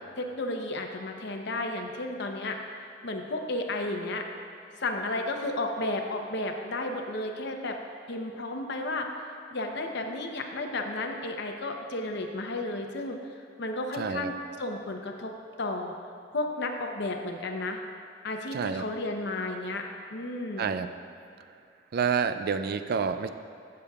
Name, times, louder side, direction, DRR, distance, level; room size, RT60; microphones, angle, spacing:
voice 1, 0.2-2.6 3.0-4.3 4.8-7.8 8.1-9.1 9.5-13.2 13.6-15.3 15.6-15.9 16.3-17.8 18.2-19.8 20.1-20.7, left 2 dB, 65° left, 3 dB, 0.8 m, -33 dB
voice 2, 14.0-14.3 18.5-18.8 20.6-20.9 21.9-23.3, right 6 dB, 55° right, 10 dB, 0.4 m, -28 dB
15.5 x 6.8 x 2.4 m, 2.7 s
head